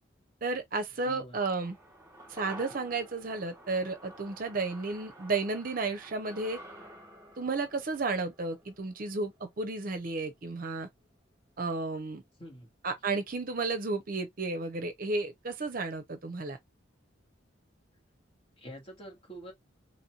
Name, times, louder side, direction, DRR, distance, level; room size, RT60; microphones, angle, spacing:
voice 1, 0.4-1.8 2.3-6.6 7.4-10.9 11.6-12.2 12.8-16.6, right 3 dB, 45° right, 0.6 m, -33 dB
voice 2, 1.0-1.3 12.4-12.7 18.6-19.5, equal, 30° left, 2.3 m, -46 dB
sound 1, 1.6-10.1 10.4-10.5, right 1 dB, 15° right, 1.5 m, -51 dB
4.1 x 3.0 x 2.9 m
head